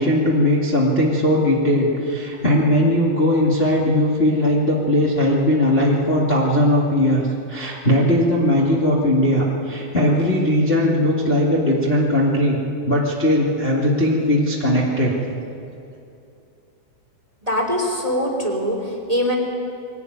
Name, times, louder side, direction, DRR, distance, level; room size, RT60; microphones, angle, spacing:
voice 1, 0.0-12.6 12.9-15.1, left 1 dB, 40° left, -4 dB, 0.8 m, -19 dB
voice 2, 17.4-19.3, equal, 10° right, 2 dB, 1.9 m, -22 dB
23.0 x 18.0 x 9.5 m, 2.7 s
omnidirectional pair, 5.4 m